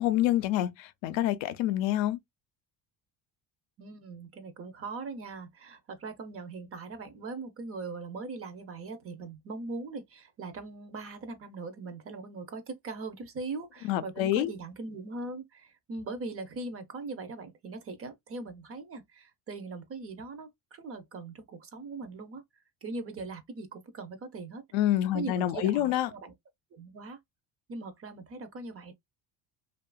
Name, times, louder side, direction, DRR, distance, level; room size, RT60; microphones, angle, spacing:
voice 1, 0.0-2.2 13.8-14.5 24.7-26.1, left 13 dB, 80° left, 0.5 m, -27 dB
voice 2, 3.8-22.4 22.8-24.6 25.1-26.3 26.7-27.2 27.7-28.9, right 3 dB, 30° right, 0.5 m, -40 dB
2.7 x 2.4 x 2.2 m
cardioid pair, 145°, 46 cm